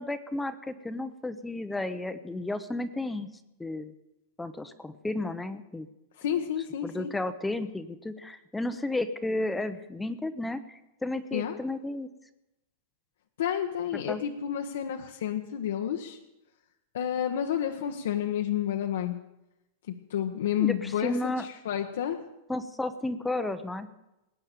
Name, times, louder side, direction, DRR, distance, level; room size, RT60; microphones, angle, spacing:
voice 1, 0.0-3.3 3.6-3.9 4.4-5.9 6.8-12.1 14.1-14.2 20.6-21.5 22.5-23.9, left 2 dB, 5° left, 11 dB, 0.6 m, -33 dB
voice 2, 6.2-7.1 11.3-11.6 13.4-16.2 16.9-19.2 19.9-22.2, left 9 dB, 80° left, 3 dB, 1.2 m, -30 dB
19.5 x 8.9 x 6.8 m, 0.93 s
supercardioid pair, 160°, 0 cm